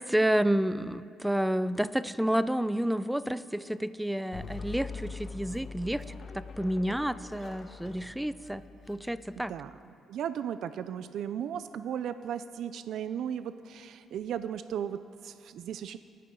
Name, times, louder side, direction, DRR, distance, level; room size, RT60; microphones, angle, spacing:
voice 1, 0.0-6.0 6.3-8.6 8.9-9.5, right 1 dB, 5° right, 15 dB, 0.4 m, -30 dB
sound 1, 4.3-9.8, left 4 dB, 50° left, 1.5 m, -43 dB
voice 2, 10.1-16.0, right 9 dB, 75° right, 12 dB, 0.4 m, -36 dB
26.0 x 10.0 x 3.8 m, 2.4 s
cardioid pair, 90°, 0 cm